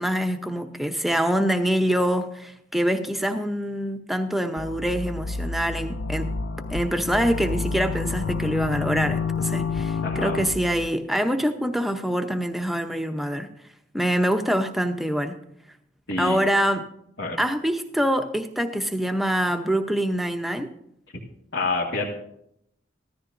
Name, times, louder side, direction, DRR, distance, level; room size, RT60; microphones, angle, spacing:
voice 1, 0.0-6.4 6.7-13.5 13.9-15.4 16.2-16.9 17.4-20.7, equal, ahead, 6 dB, 0.7 m, -25 dB
sound 1, 4.6-10.9, left 4 dB, 90° left, 0.5 m, -29 dB
voice 2, 10.0-10.4 16.1-16.4 17.2-17.4 21.1-21.2 21.5-22.1, left 3 dB, 70° left, -4 dB, 1.8 m, -27 dB
15.0 x 13.0 x 2.6 m, 0.75 s
head